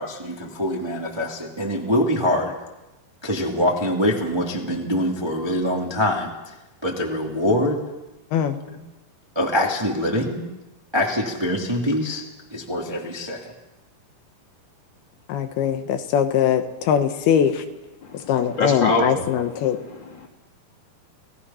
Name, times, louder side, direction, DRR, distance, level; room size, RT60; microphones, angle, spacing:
voice 1, 0.0-2.5 3.2-6.3 6.8-7.8 9.3-10.4 10.9-12.2 12.5-13.4, left 1 dB, 10° right, 0 dB, 1.4 m, -24 dB
voice 2, 15.3-17.6 18.3-19.8, left 9 dB, 80° left, 8 dB, 3.1 m, -21 dB
voice 3, 18.6-19.3 20.0-20.3, left 2 dB, 30° left, 0 dB, 2.9 m, -24 dB
29.5 x 18.0 x 5.6 m, 1.0 s
omnidirectional pair, 4.5 m